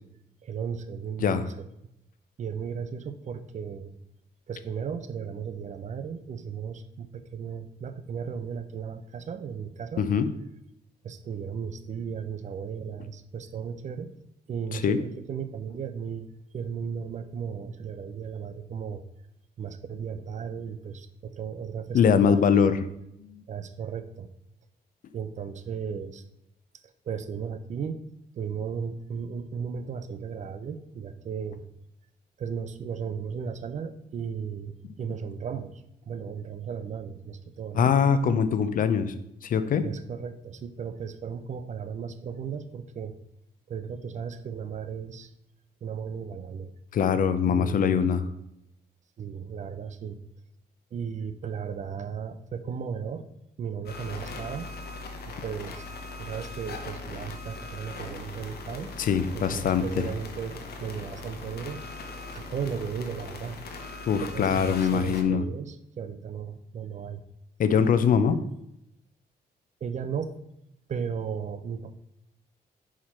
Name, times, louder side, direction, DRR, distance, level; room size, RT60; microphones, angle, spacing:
voice 1, 0.4-1.7 2.4-3.9 4.5-10.1 11.0-14.1 14.5-19.0 19.6-22.5 23.5-24.3 25.1-26.2 27.0-28.0 28.4-31.6 32.4-37.9 39.8-43.2 43.7-45.3 45.8-46.7 47.4-48.2 49.2-50.2 50.9-53.3 53.6-54.7 55.3-55.9 56.2-58.9 59.4-61.8 62.3-63.6 64.1-67.2 68.1-68.3 69.8-70.4 70.9-71.9, right 7 dB, 45° right, 11 dB, 0.5 m, -35 dB
voice 2, 10.0-10.3 14.7-15.0 21.9-22.7 23.2-23.4 37.8-39.1 39.4-39.9 46.9-48.2 59.0-60.0 64.1-65.4 67.6-68.4, left 7 dB, 55° left, 12 dB, 0.5 m, -23 dB
sound 1, 53.8-65.2, left 3 dB, 75° left, 1.0 m, -40 dB
5.7 x 4.8 x 4.2 m, 0.81 s
cardioid pair, 125°, 17 cm